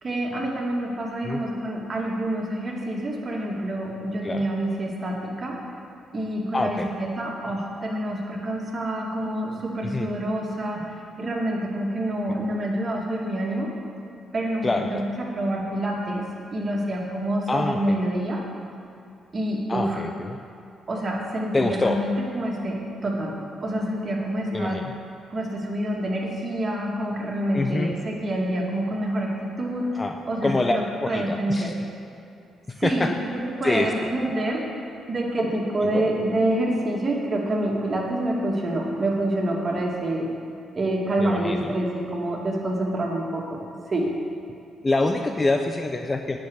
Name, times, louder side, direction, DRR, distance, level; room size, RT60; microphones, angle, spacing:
voice 1, 0.0-5.6 6.1-13.7 14.3-16.2 16.5-18.4 19.3-20.0 20.9-23.4 23.6-24.9 25.3-30.0 30.3-31.8 32.8-34.7 35.1-40.3 40.7-44.1, right 1 dB, 40° right, -1 dB, 2.3 m, -27 dB
voice 2, 6.5-6.9 9.8-10.1 14.6-15.0 17.5-18.0 19.7-20.4 21.5-22.0 24.5-24.9 27.5-27.9 30.0-30.2 30.4-31.7 32.8-33.1 33.6-33.9 35.8-36.0 41.2-41.7 44.8-46.4, left 2 dB, 25° left, 5 dB, 0.7 m, -25 dB
9.6 x 6.4 x 8.1 m, 2.6 s
hypercardioid pair, 45°, 0 cm